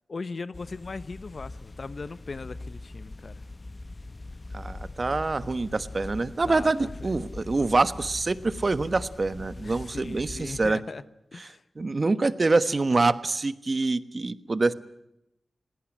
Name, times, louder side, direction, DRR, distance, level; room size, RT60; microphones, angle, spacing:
voice 1, 0.1-3.3 6.5-7.2 9.6-11.0 11.3-11.6, left 4 dB, 60° left, 15 dB, 1.1 m, -39 dB
sound 1, 0.5-10.7, left 2 dB, 40° left, 1.0 m, -41 dB
voice 2, 4.5-10.8 11.8-14.7, right 3 dB, 50° right, 14 dB, 1.2 m, -25 dB
20.5 x 17.0 x 9.9 m, 0.84 s
cardioid pair, 45°, 0 cm